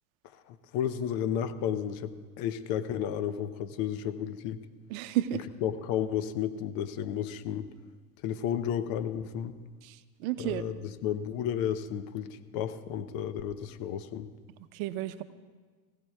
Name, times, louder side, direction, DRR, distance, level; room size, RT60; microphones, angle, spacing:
voice 1, 0.5-4.6 5.3-7.7 8.2-9.6 10.4-14.3, left 9 dB, 45° left, 11 dB, 0.9 m, -32 dB
voice 2, 4.9-5.4 10.2-10.6 14.7-15.2, right 13 dB, 55° right, 11 dB, 0.9 m, -31 dB
23.5 x 15.5 x 2.3 m, 1.5 s
hypercardioid pair, 90°, 48 cm